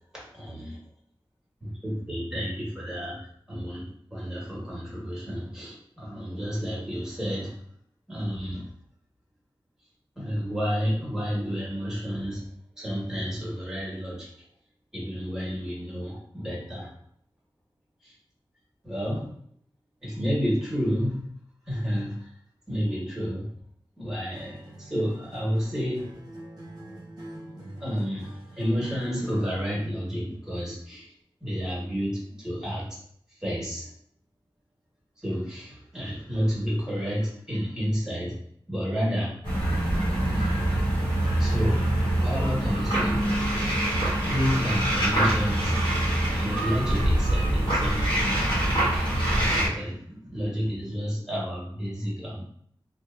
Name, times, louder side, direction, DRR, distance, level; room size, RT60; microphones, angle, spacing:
voice 1, 0.2-0.8 1.6-3.8 4.1-7.6 8.1-8.6 10.1-12.4 12.8-14.3 14.9-16.9 18.0-18.1 18.8-19.3 20.0-21.2 21.7-22.3 22.7-23.5 24.0-26.1 27.8-28.3 28.6-31.1 31.4-32.9 33.4-33.9 35.2-38.4 38.7-39.4 40.3-40.5 41.4-41.8 42.2-43.2 44.2-45.8 46.3-52.4, equal, 5° right, -6 dB, 1.4 m, -30 dB
Acoustic guitar, 24.3-29.7, right 1 dB, 45° right, 0.7 m, -44 dB
sound 1, 39.4-49.7, right 1 dB, 65° left, 1.3 m, -24 dB
2.7 x 2.4 x 2.5 m, 0.62 s
wide cardioid pair, 65°, 9 cm